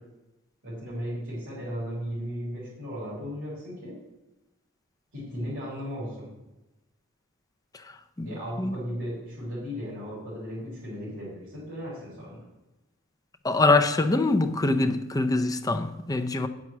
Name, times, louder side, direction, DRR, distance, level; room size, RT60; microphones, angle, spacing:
voice 1, 0.6-4.0 5.1-6.3 8.2-12.4, equal, 60° right, 4.0 m, -36 dB
voice 2, 7.7-8.8 13.4-16.5, left 2 dB, 15° left, 0.5 m, -24 dB
8.0 x 6.2 x 7.3 m
head